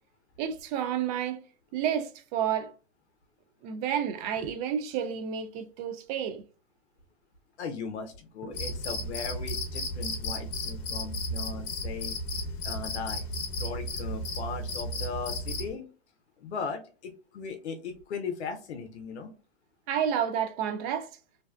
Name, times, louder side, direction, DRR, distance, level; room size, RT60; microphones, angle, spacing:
voice 1, 0.4-1.4 1.7-2.7 3.6-6.4 8.4-8.6 19.9-21.1, right 9 dB, 40° right, 0.4 m, -30 dB
voice 2, 7.6-12.2 12.6-15.9 16.4-19.3, left 5 dB, 90° left, 0.5 m, -38 dB
Cricket, 8.5-15.7, left 1 dB, 40° left, 0.8 m, -34 dB
2.6 x 2.1 x 2.2 m
hypercardioid pair, 115°, 33 cm